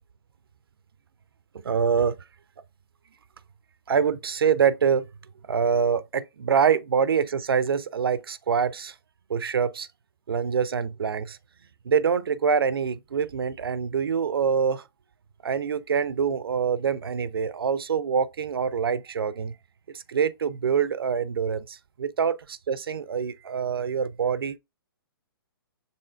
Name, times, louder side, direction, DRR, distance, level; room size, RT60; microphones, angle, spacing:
voice 1, 1.6-2.2 3.9-5.1 5.5-8.9 9.3-9.9 10.3-11.4 11.8-14.9 15.4-19.6 19.9-24.6, right 6 dB, 70° right, 0.4 m, -25 dB
6.7 x 3.4 x 2.2 m
figure-of-eight pair, 120°, 13 cm